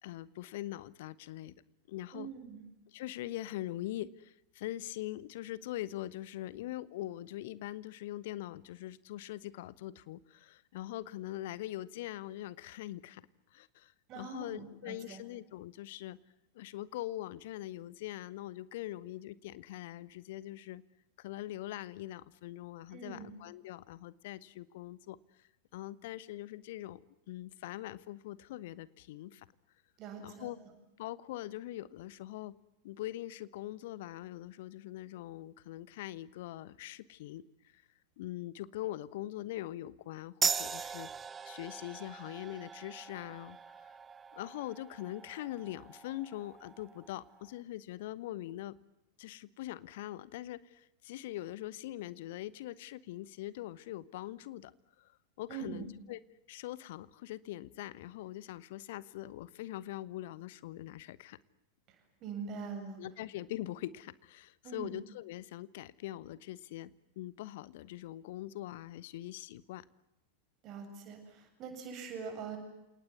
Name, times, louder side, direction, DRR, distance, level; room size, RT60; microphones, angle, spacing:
voice 1, 0.0-1.5 1.9-2.3 2.9-13.2 13.5-16.2 16.5-20.8 21.2-25.2 25.7-27.0 27.3-29.5 30.2-30.6 31.0-32.5 32.8-37.7 38.2-41.1 41.4-43.6 44.4-48.7 49.2-54.7 55.0-55.1 55.4-56.2 56.5-61.4 63.0-66.9 67.2-69.8, left 14 dB, 50° left, 19 dB, 1.1 m, -42 dB
voice 2, 2.1-2.6 14.1-15.2 22.9-23.3 30.0-30.5 55.5-55.8 62.2-63.0 64.6-64.9 70.6-72.6, right 6 dB, 35° right, 4 dB, 7.9 m, -43 dB
sound 1, 40.4-47.5, right 6 dB, 20° right, 1.0 m, -40 dB
29.0 x 19.0 x 9.7 m, 0.92 s
figure-of-eight pair, 90°, 0 cm